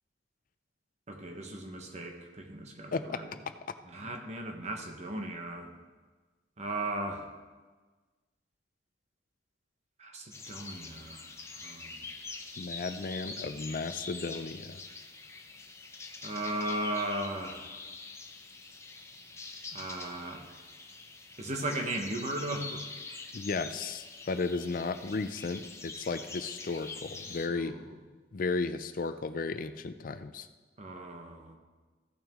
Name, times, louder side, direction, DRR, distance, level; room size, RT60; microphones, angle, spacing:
voice 1, 1.1-3.3 3.9-5.7 6.6-7.2 10.0-11.3 11.6-12.0 16.2-17.7 19.7-20.4 21.4-22.8 27.5-28.0 30.8-31.6, right 1 dB, 40° right, 3 dB, 1.2 m, -37 dB
voice 2, 2.9-3.2 12.6-14.8 23.3-27.8 28.3-30.5, left 4 dB, 50° left, 11 dB, 0.4 m, -34 dB
sound 1, 10.3-27.5, left 3 dB, 15° left, 0.7 m, -45 dB
15.5 x 6.0 x 3.6 m, 1.3 s
head